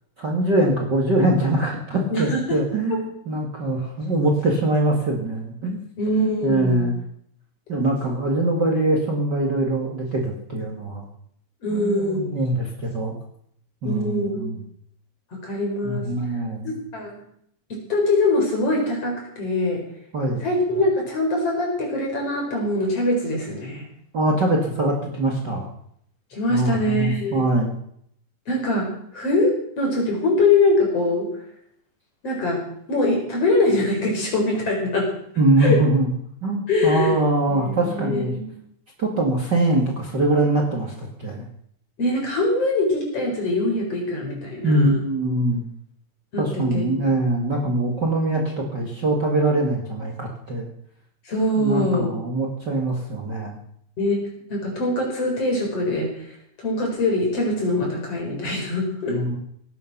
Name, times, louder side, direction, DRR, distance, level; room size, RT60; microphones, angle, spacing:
voice 1, 0.2-5.8 6.4-6.9 7.7-11.1 11.7-13.1 13.8-14.6 15.8-16.7 20.1-20.4 24.1-25.7 26.5-27.7 35.4-36.1 36.4-38.3 39.0-41.4 44.6-45.7 46.4-50.7 51.6-53.6 59.1-59.4, right 1 dB, 35° right, 1 dB, 2.2 m, -23 dB
voice 2, 2.1-2.6 6.0-6.9 11.6-12.3 13.8-14.4 15.3-16.1 16.6-17.2 17.7-19.8 20.4-23.9 26.3-27.4 28.5-28.9 29.1-31.3 32.2-32.6 32.9-35.1 35.6-35.8 36.7-37.2 37.5-38.5 42.0-45.0 46.3-47.1 51.3-52.1 54.0-54.2 54.5-56.1 56.6-59.2, left 2 dB, 45° left, 0 dB, 5.5 m, -23 dB
18.0 x 9.9 x 6.0 m, 0.68 s
omnidirectional pair, 3.8 m